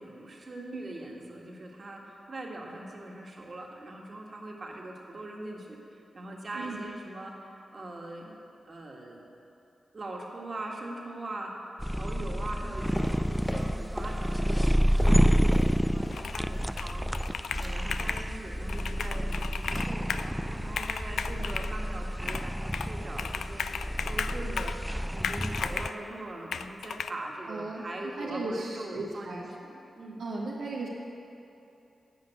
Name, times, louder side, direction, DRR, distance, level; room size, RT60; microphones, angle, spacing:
voice 1, 0.0-8.4 8.7-9.3 9.9-17.1 17.6-23.7 24.1-24.7 25.1-30.2, right 2 dB, 55° right, -1 dB, 1.8 m, -41 dB
sound 1, 11.8-25.9, equal, 5° right, 0.4 m, -29 dB
sound 2, 13.0-14.2 14.5-16.3 16.5-17.3 17.6-17.8 18.1-18.3 18.6-18.9 19.1-19.2, left 1 dB, 15° left, 1.8 m, -40 dB
Computer keyboard, 16.1-16.5 16.8-18.3 18.7-20.3 20.7-21.7 22.3-22.9 23.2-24.8 25.2-26.0 26.5-27.1, left 6 dB, 80° left, 0.3 m, -35 dB
voice 2, 27.5-29.5 30.2-30.9, right 2 dB, 90° right, -5 dB, 1.2 m, -36 dB
13.0 x 5.2 x 8.1 m, 2.8 s
supercardioid pair, 40°, 0 cm